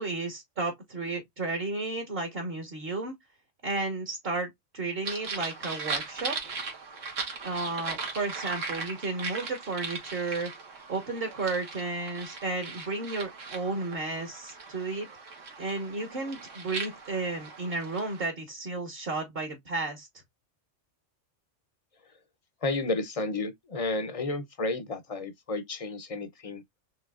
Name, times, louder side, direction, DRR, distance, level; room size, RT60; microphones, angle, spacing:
voice 1, 0.0-3.1 3.6-6.4 7.4-10.5 10.9-15.1 15.6-20.1, right 3 dB, 50° right, 1.4 m, -33 dB
sound 1, 5.0-18.3, right 4 dB, 90° right, 1.6 m, -38 dB
voice 2, 22.6-26.6, left 2 dB, 40° left, 0.6 m, -32 dB
5.0 x 3.2 x 2.4 m
omnidirectional pair, 1.3 m